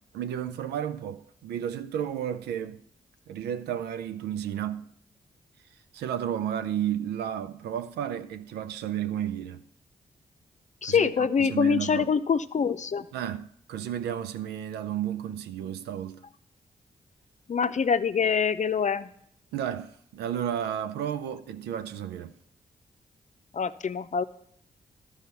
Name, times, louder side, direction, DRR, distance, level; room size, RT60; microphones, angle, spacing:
voice 1, 0.1-2.8 3.3-4.8 5.9-9.6 10.9-12.1 13.1-16.2 19.5-22.4, right 10 dB, 85° right, 0.5 m, -32 dB
voice 2, 10.8-13.1 17.5-19.1 23.5-24.2, left 6 dB, 45° left, 0.6 m, -25 dB
12.5 x 4.8 x 6.7 m
supercardioid pair, 40°, 17 cm